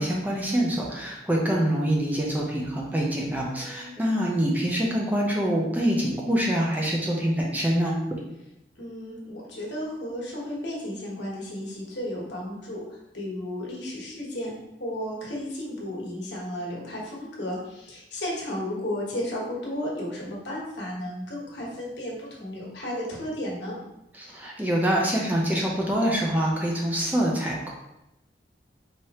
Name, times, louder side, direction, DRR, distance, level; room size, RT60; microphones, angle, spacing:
voice 1, 0.0-8.0 24.1-27.7, equal, 10° right, -3 dB, 0.6 m, -25 dB
voice 2, 3.4-4.0 8.8-14.5 14.8-23.8, left 1 dB, 80° left, -3 dB, 1.3 m, -34 dB
4.8 x 2.9 x 2.9 m, 0.87 s
head